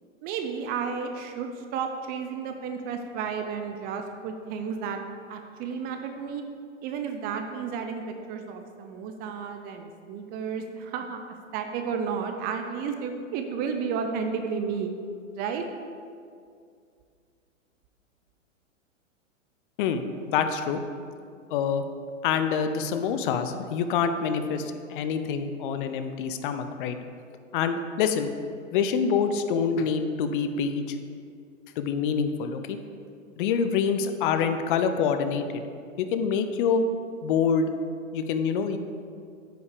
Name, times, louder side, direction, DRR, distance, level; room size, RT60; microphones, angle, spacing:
voice 1, 0.2-5.0 5.3-6.4 6.8-14.9 15.3-15.6, right 6 dB, 25° right, 5 dB, 0.6 m, -32 dB
voice 2, 20.3-20.8 21.5-21.8 22.2-27.0 27.5-28.3 28.7-30.8 31.8-32.8 33.4-35.6 36.0-36.8 37.2-37.7 38.1-38.8, left 6 dB, 40° left, 8 dB, 0.7 m, -26 dB
9.2 x 5.8 x 6.7 m, 2.3 s
hypercardioid pair, 125°, 39 cm